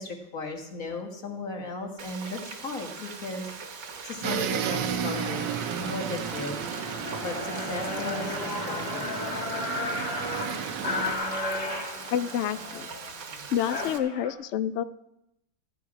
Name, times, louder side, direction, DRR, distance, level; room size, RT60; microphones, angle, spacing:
voice 1, 0.0-5.4 5.7-6.6 6.9-9.1, left 3 dB, 50° left, 2 dB, 2.0 m, -36 dB
Frying (food), 2.0-14.0, right 5 dB, 55° right, 1.4 m, -41 dB
sound 1, 2.1-2.3 2.9-3.2 3.7-4.1 4.5-4.6 4.9-14.3, left 2 dB, 70° left, 2.5 m, -35 dB
sound 2, 4.2-11.1, right 8 dB, 85° right, 1.5 m, -33 dB
voice 2, 12.1-12.9 13.5-14.8, left 10 dB, 90° left, 13 dB, 0.6 m, -28 dB
14.5 x 9.3 x 4.8 m, 0.84 s
omnidirectional pair, 1.8 m